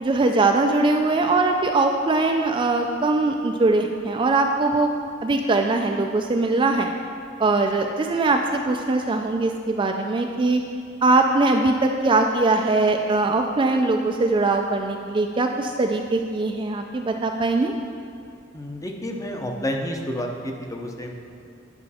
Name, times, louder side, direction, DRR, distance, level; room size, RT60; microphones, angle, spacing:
voice 1, 0.0-4.9 5.2-6.9 7.4-10.6 11.0-17.7, right 3 dB, 25° right, 3 dB, 0.3 m, -21 dB
voice 2, 18.5-21.1, equal, 15° left, 2 dB, 0.7 m, -30 dB
9.6 x 5.3 x 4.1 m, 2.5 s
head